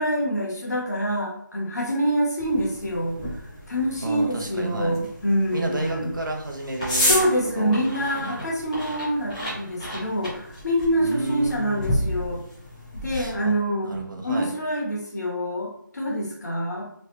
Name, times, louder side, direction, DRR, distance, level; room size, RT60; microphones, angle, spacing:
voice 1, 0.0-6.1 7.1-12.4 13.0-13.9 14.2-16.8, equal, 55° left, -2 dB, 1.0 m, -26 dB
sound 1, 2.4-13.4, equal, 15° left, 0.9 m, -32 dB
voice 2, 4.0-5.0 5.5-8.4 11.0-12.0 13.1-13.5 13.8-14.5, right 2 dB, 70° right, 1 dB, 0.8 m, -31 dB
3.1 x 2.2 x 2.9 m, 0.73 s
figure-of-eight pair, 175°, 11 cm